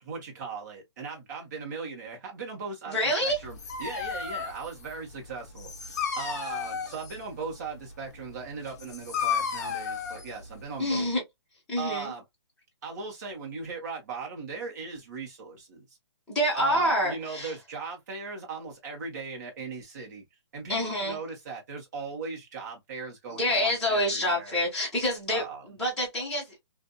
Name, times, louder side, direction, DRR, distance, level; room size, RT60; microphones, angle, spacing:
voice 1, 0.0-11.1 11.8-12.2 12.8-15.8 16.5-20.2 20.5-24.6 25.3-25.6, right 4 dB, 40° right, 1.2 m, -38 dB
voice 2, 2.9-3.4 10.8-11.2 11.7-12.1 16.3-17.5 20.7-21.2 23.4-26.6, equal, 5° left, 1.1 m, -27 dB
Dog, 3.3-11.1, left 6 dB, 40° left, 0.6 m, -34 dB
2.6 x 2.6 x 2.2 m
hypercardioid pair, 165°, 14 cm